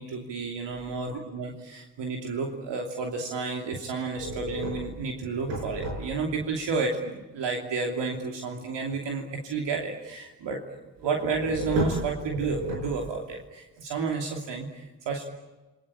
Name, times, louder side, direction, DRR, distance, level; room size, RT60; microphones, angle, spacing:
voice 1, 0.0-15.3, right 4 dB, 65° right, 2 dB, 3.1 m, -31 dB
sound 1, 4.2-6.5 11.0-13.3, right 1 dB, 90° right, 6.4 m, -32 dB
29.0 x 22.0 x 8.8 m, 1.1 s
hypercardioid pair, 45°, 45 cm